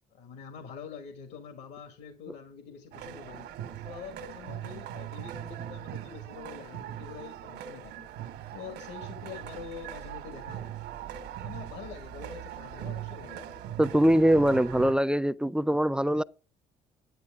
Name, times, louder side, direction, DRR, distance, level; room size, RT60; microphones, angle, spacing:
voice 1, 0.1-3.5 3.8-10.7 11.4-13.6, left 7 dB, 90° left, 2.1 m, -45 dB
sound 1, 2.9-14.9, right 11 dB, 85° right, 1.3 m, -40 dB
voice 2, 13.8-16.2, right 1 dB, 5° right, 0.4 m, -23 dB
10.5 x 9.2 x 3.5 m
cardioid pair, 110°, 17 cm